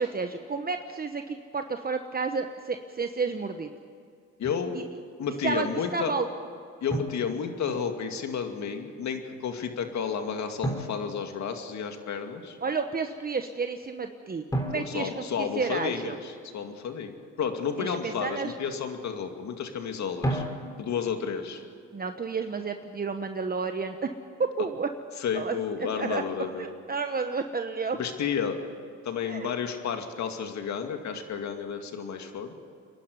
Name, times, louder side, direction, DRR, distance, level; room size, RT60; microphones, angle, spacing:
voice 1, 0.0-3.7 4.7-4.8 5.4-6.3 12.6-16.2 17.8-18.5 21.9-24.1 24.6-24.9 25.3-25.5 26.0-26.2 26.6-28.0 29.2-29.5, right 5 dB, 30° right, 6 dB, 1.1 m, -31 dB
voice 2, 4.4-4.7 5.2-6.1 6.8-12.6 14.7-20.4 20.8-21.6 25.2-26.7 28.0-28.6 29.0-32.5, left 7 dB, 65° left, 5 dB, 2.4 m, -31 dB
Drum, 4.4-4.7 6.9-8.0 10.6-12.0 14.5-16.2 20.2-21.2, right 1 dB, 10° left, 3.4 m, -34 dB
28.0 x 11.5 x 9.7 m, 2.3 s
cardioid pair, 90°, 30 cm